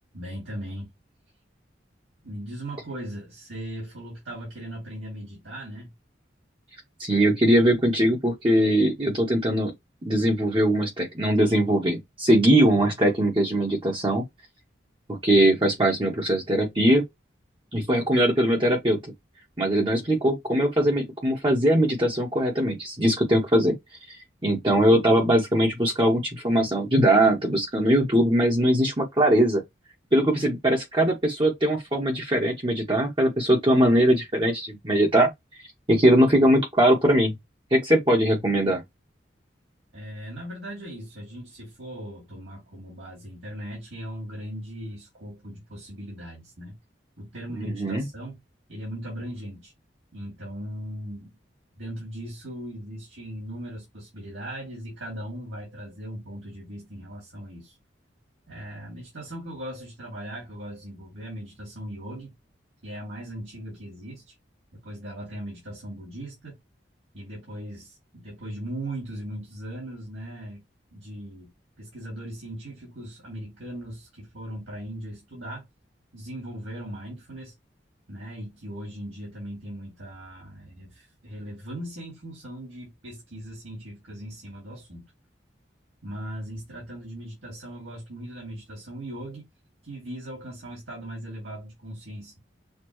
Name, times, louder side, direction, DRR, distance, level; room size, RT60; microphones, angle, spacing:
voice 1, 0.1-0.9 2.2-5.9 39.9-46.8 47.2-48.4 48.7-49.7 50.1-51.4 51.8-57.8 58.5-62.3 62.8-64.3 64.7-66.6 67.1-70.6 70.9-71.5 71.8-75.7 76.1-77.5 78.1-85.1 86.0-89.5 89.8-92.3, right 1 dB, 85° right, 2.8 m, -38 dB
voice 2, 7.0-9.7 10.0-14.2 15.1-17.0 17.7-19.0 19.6-23.8 24.4-29.6 30.1-35.3 35.9-37.4 37.7-38.8 47.8-48.0, right 1 dB, 25° right, 1.1 m, -21 dB
6.7 x 2.3 x 3.0 m
head